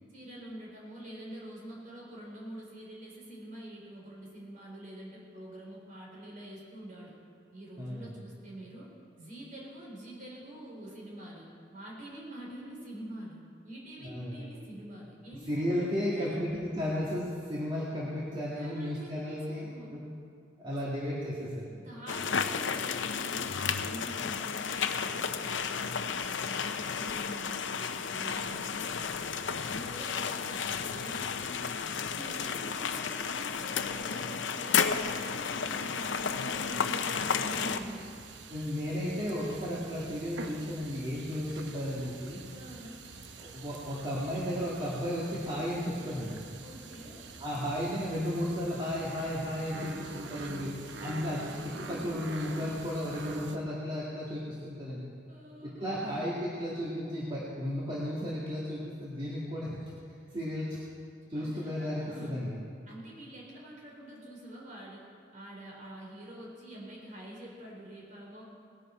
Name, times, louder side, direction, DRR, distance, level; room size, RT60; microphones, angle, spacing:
voice 1, 0.1-7.2 7.5-8.9 9.2-16.4 18.6-20.0 20.8-21.0 21.8-23.5 23.8-29.2 29.5-31.6 31.9-38.1 42.5-43.0 46.6-47.2 50.0-51.1 55.3-56.0 61.3-62.5 62.9-65.1 65.3-68.4, right 1 dB, 45° right, -3 dB, 3.6 m, -46 dB
voice 2, 7.8-8.1 14.0-14.4 15.5-20.1 20.6-21.7 38.5-42.4 43.4-46.4 47.4-50.7 51.0-55.0 55.6-59.8 60.3-60.8 61.3-62.6, equal, 30° right, -7 dB, 1.9 m, -34 dB
sound 1, 22.1-37.8, left 6 dB, 80° left, 0.7 m, -32 dB
sound 2, 37.4-53.6, right 3 dB, 70° right, 0.9 m, -45 dB
19.0 x 11.0 x 4.4 m, 2.2 s
head